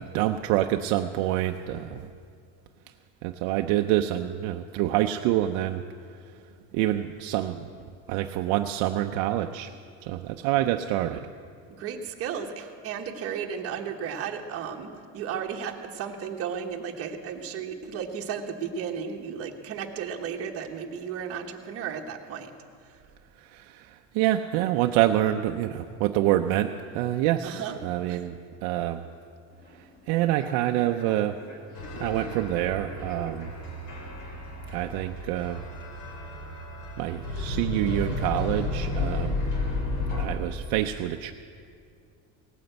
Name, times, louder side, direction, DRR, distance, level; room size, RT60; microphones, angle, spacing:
voice 1, 0.0-2.1 3.2-5.8 6.7-7.6 8.1-9.7 10.0-11.3 23.4-28.3 28.6-29.1 30.1-31.4 32.0-33.5 34.7-35.6 37.0-39.4 40.2-41.3, right 13 dB, 65° right, 6 dB, 0.6 m, -26 dB
voice 2, 11.8-22.5 27.4-27.8 28.1-28.2, right 7 dB, 35° right, 2 dB, 1.3 m, -34 dB
Human voice / Subway metro underground, 29.5-35.0, left 1 dB, 20° left, 1.6 m, -47 dB
sound 1, 31.7-40.3, left 2 dB, 65° left, 3.3 m, -32 dB
18.0 x 9.4 x 7.9 m, 2.3 s
cardioid pair, 170°, 39 cm